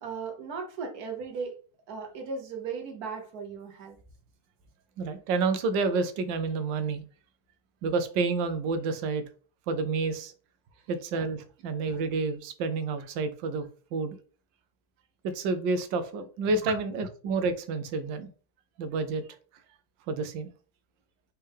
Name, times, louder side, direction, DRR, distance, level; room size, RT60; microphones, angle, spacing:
voice 1, 0.0-1.6 1.9-4.0 10.7-10.8 16.6-16.8, right 5 dB, 60° right, 4 dB, 1.3 m, -37 dB
voice 2, 5.0-7.0 7.8-9.2 9.7-10.3 10.9-14.2 15.2-18.3 18.8-19.2 20.1-20.5, right 4 dB, 80° right, 10 dB, 1.3 m, -29 dB
4.3 x 3.4 x 3.4 m, 0.39 s
omnidirectional pair, 2.0 m